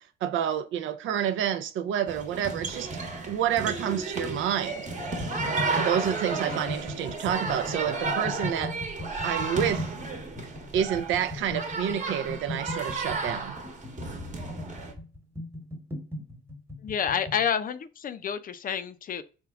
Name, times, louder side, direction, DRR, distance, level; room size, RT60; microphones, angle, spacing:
voice 1, 0.0-2.9 3.3-4.9 5.6-8.8 9.2-9.9 10.7-13.6, right 9 dB, 75° right, 0.5 m, -29 dB
sound 1, 2.1-14.9, right 3 dB, 35° right, 1.0 m, -33 dB
sound 2, 5.2-17.5, left 1 dB, 10° right, 1.1 m, -38 dB
voice 2, 16.8-19.2, left 8 dB, 45° left, 0.4 m, -29 dB
3.4 x 2.2 x 3.4 m
cardioid pair, 90°, 20 cm